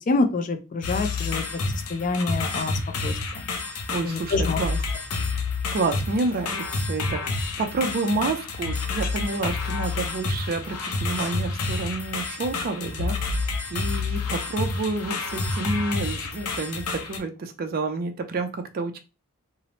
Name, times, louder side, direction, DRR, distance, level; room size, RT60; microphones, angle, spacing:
voice 1, 0.1-1.4 1.9-2.7 3.0-3.1 4.0-4.6, left 3 dB, 35° left, 8 dB, 0.3 m, -25 dB
sound 1, 0.8-17.2, left 3 dB, 80° left, 0.6 m, -29 dB
voice 2, 3.9-4.8 5.7-19.0, right 3 dB, 40° right, 6 dB, 0.4 m, -29 dB
2.8 x 2.0 x 2.8 m, 0.29 s
head